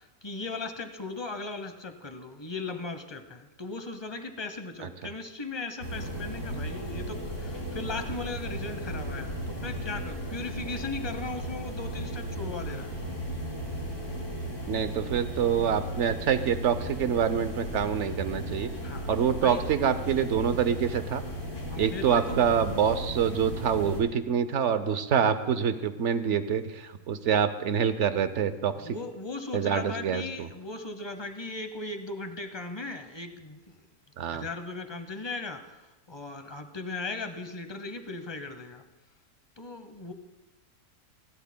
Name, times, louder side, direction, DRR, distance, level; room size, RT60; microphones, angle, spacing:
voice 1, 0.0-12.9 18.8-19.1 19.4-19.6 21.7-22.4 28.8-33.6 34.3-38.8 39.6-40.1, left 3 dB, 25° left, 8 dB, 0.7 m, -38 dB
sound 1, 5.8-24.0, equal, 75° left, 3.7 m, -35 dB
voice 2, 14.7-18.7 19.1-21.2 21.8-29.0 29.5-30.5 34.2-34.4, right 8 dB, 60° right, 11 dB, 0.9 m, -26 dB
29.5 x 12.0 x 2.2 m, 1.1 s
omnidirectional pair, 1.6 m